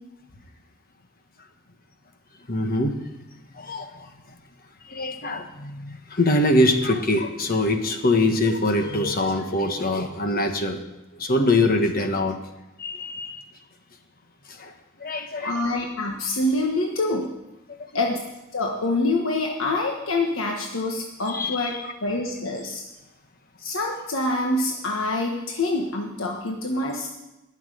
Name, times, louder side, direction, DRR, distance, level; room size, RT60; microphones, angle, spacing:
voice 1, 2.5-3.0 3.5-4.1 4.9-10.8 11.1-12.4 12.8-13.4 14.5-14.7 15.0-15.8 17.8-17.9 21.3-21.7, left 1 dB, 45° left, 6 dB, 1.3 m, -23 dB
voice 2, 15.4-17.3 17.9-18.1 18.5-21.7 22.0-22.8 23.6-27.1, left 2 dB, 90° left, 1 dB, 1.4 m, -26 dB
11.5 x 7.3 x 9.9 m, 0.96 s
head